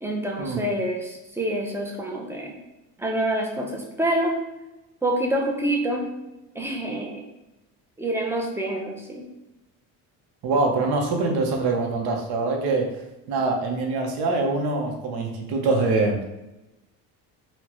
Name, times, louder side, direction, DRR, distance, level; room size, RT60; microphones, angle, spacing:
voice 1, 0.0-2.5 3.0-4.4 5.0-6.1 6.6-7.2 8.0-9.2, right 1 dB, 5° right, 0 dB, 0.5 m, -26 dB
voice 2, 10.4-12.9 13.3-16.2, right 3 dB, 70° right, 2 dB, 0.8 m, -24 dB
4.3 x 2.1 x 3.0 m, 0.98 s
cardioid pair, 125°, 39 cm